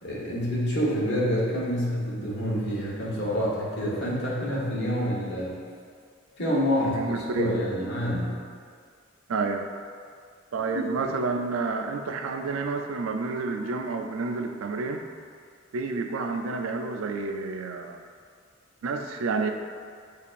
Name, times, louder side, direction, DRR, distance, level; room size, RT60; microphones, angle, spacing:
voice 1, 0.0-5.5 6.4-7.0 7.3-8.4, equal, 55° left, -6 dB, 1.2 m, -27 dB
voice 2, 6.8-7.6 9.3-9.7 10.5-15.0 15.7-18.0 18.8-19.5, right 4 dB, 85° right, 4 dB, 0.4 m, -29 dB
6.9 x 2.8 x 2.5 m, 2.2 s
head